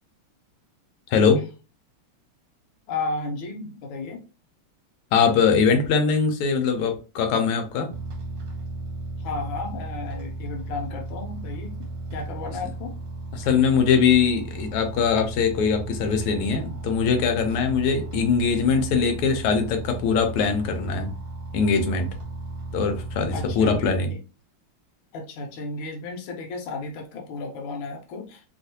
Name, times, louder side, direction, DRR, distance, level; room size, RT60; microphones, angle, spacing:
voice 1, 1.1-1.4 5.1-7.9 13.3-21.1 21.5-22.1 22.7-24.1, left 5 dB, 90° left, 1.6 m, -22 dB
voice 2, 2.9-4.2 9.2-11.8 12.1-12.9 23.3-24.2 25.1-28.4, left 3 dB, 70° left, 1.4 m, -33 dB
sound 1, 7.9-23.9, right 2 dB, 70° right, 0.9 m, -35 dB
3.6 x 2.4 x 2.7 m
omnidirectional pair, 2.4 m